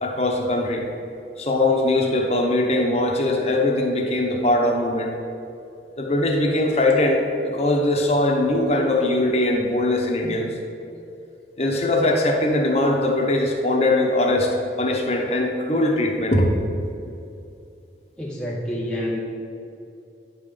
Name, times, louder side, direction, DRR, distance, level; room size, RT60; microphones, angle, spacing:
voice 1, 0.0-0.9 1.4-5.1 6.0-10.5 11.6-16.5, left 1 dB, 35° left, 1 dB, 0.9 m, -21 dB
voice 2, 18.2-19.2, equal, 5° left, -4 dB, 0.6 m, -28 dB
9.7 x 3.8 x 6.6 m, 2.6 s
head